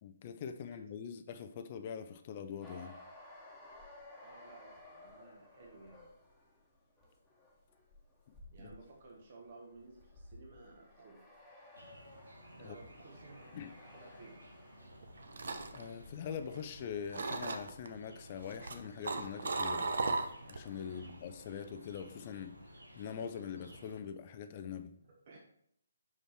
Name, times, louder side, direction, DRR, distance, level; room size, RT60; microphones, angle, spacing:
voice 1, 0.0-3.0 8.6-8.7 12.6-12.8 13.5-13.7 15.7-19.9 20.5-22.5 23.0-24.9, left 7 dB, 30° left, 9 dB, 0.5 m, -43 dB
sound 1, 2.6-18.2 18.5-21.1, left 1 dB, 5° left, 1.4 m, -58 dB
voice 2, 4.2-6.1 8.5-11.2 12.6-13.7 13.9-14.4 20.8-21.1 25.0-25.4, right 3 dB, 40° right, -1 dB, 1.4 m, -56 dB
sound 2, 11.7-24.0, equal, 75° right, 1.3 m, -56 dB
sound 3, 14.9-16.8 17.1-17.9 18.4-20.7 21.0-21.3, right 3 dB, 55° right, 0.7 m, -36 dB
6.0 x 5.2 x 4.5 m, 0.69 s
figure-of-eight pair, 140°, 0 cm